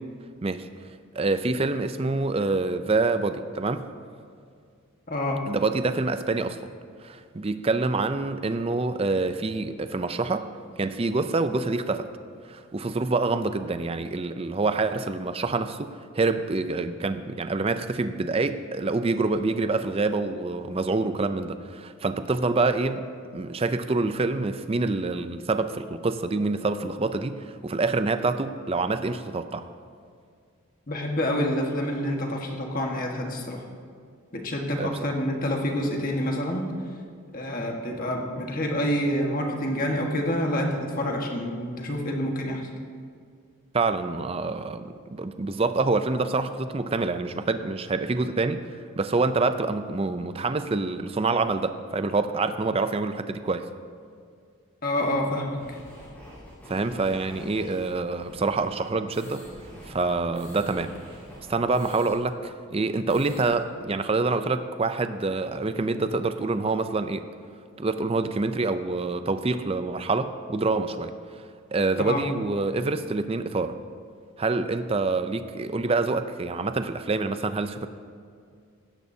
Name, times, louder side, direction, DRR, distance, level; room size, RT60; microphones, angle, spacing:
voice 1, 1.1-3.9 5.5-6.6 7.0-10.5 10.8-12.1 12.5-23.0 23.3-29.7 34.8-35.0 43.7-48.7 49.0-53.6 56.7-59.5 59.9-60.9 61.5-67.3 67.8-71.1 71.7-73.8 74.4-77.9, right 3 dB, 25° right, 10 dB, 0.4 m, -26 dB
voice 2, 5.1-5.4 30.9-33.6 34.3-36.7 37.3-42.7 54.8-55.6 72.0-72.2, left 1 dB, 40° left, 1 dB, 1.5 m, -27 dB
sound 1, 55.5-62.1 62.4-62.5 62.8-63.5, equal, 5° left, 3.7 m, -46 dB
16.5 x 13.5 x 2.8 m, 2.2 s
head